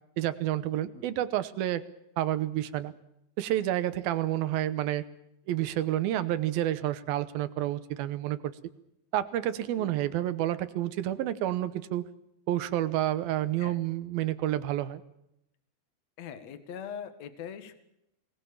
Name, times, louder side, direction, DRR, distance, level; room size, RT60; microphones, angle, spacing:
voice 1, 0.2-1.8 2.2-2.9 3.4-5.0 5.5-8.5 9.1-12.1 12.5-15.0, right 13 dB, 75° right, 12 dB, 2.5 m, -29 dB
voice 2, 16.2-17.7, left 8 dB, 50° left, 10 dB, 2.4 m, -41 dB
23.5 x 19.0 x 7.1 m, 0.82 s
omnidirectional pair, 4.8 m